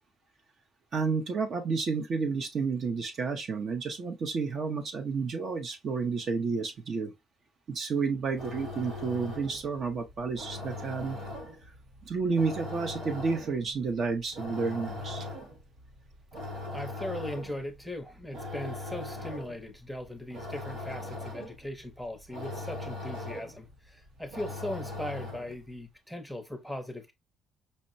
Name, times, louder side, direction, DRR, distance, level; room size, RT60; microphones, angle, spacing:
voice 1, 0.9-7.1 7.7-11.2 12.0-15.3, right 4 dB, 45° right, 0.6 m, -31 dB
sound 1, 8.2-25.7, left 2 dB, 75° right, 1.2 m, -41 dB
voice 2, 16.7-27.1, left 1 dB, ahead, 0.7 m, -39 dB
5.3 x 2.1 x 2.5 m
cardioid pair, 145°, 0 cm